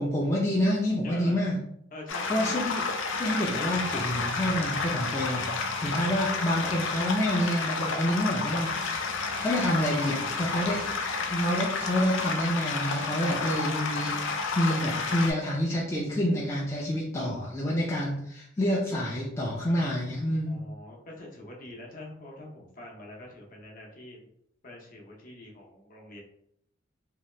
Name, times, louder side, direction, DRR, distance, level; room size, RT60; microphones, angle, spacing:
voice 1, 0.0-1.6 2.3-2.8 3.2-8.7 9.4-10.8 11.3-20.6, equal, 15° left, -5 dB, 0.4 m, -28 dB
voice 2, 1.0-1.4 1.9-2.5 10.0-10.9 20.5-24.3 24.6-26.2, left 1 dB, 45° left, -1 dB, 0.7 m, -45 dB
sound 1, 2.1-15.3, left 4 dB, 85° left, 0.5 m, -31 dB
2.7 x 2.3 x 3.1 m, 0.72 s
head